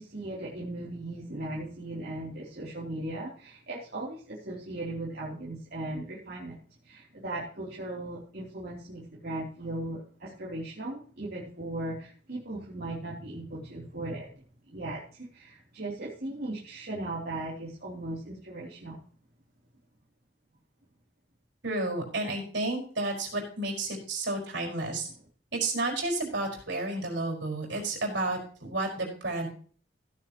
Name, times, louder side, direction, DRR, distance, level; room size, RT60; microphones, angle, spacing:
voice 1, 0.0-14.4 14.7-19.0, right 2 dB, 60° right, -6 dB, 3.2 m, -38 dB
voice 2, 21.6-25.0 25.5-29.5, right 2 dB, 75° right, 1 dB, 5.0 m, -31 dB
16.0 x 10.5 x 3.0 m, 0.43 s
head